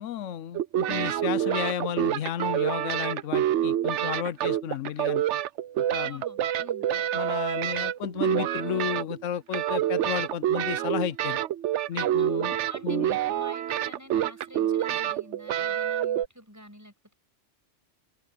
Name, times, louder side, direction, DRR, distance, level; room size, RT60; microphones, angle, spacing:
voice 1, 0.0-5.2 5.9-6.2 6.9-11.4 11.9-12.6 12.8-13.2, left 9 dB, 85° left, 1.0 m, -33 dB
sound 1, 0.5-9.3 9.5-16.3, right 11 dB, 75° right, 0.9 m, -27 dB
voice 2, 6.0-6.8 12.2-17.1, equal, 15° right, 6.8 m, -48 dB
open air
omnidirectional pair, 1.2 m